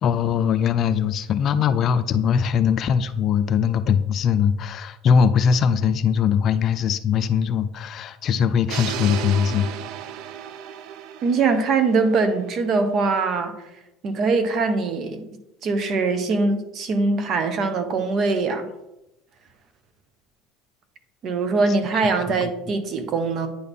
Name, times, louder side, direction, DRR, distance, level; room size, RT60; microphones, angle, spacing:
voice 1, 0.0-9.7 22.3-22.5, left 7 dB, 45° left, 12 dB, 0.4 m, -21 dB
sound 1, 8.7-12.7, right 9 dB, 60° right, 0.4 m, -34 dB
voice 2, 11.2-13.6 14.0-15.2 15.6-18.7 21.2-23.5, right 4 dB, 45° right, 9 dB, 0.9 m, -22 dB
9.4 x 4.1 x 3.5 m, 0.92 s
supercardioid pair, 115°, 0 cm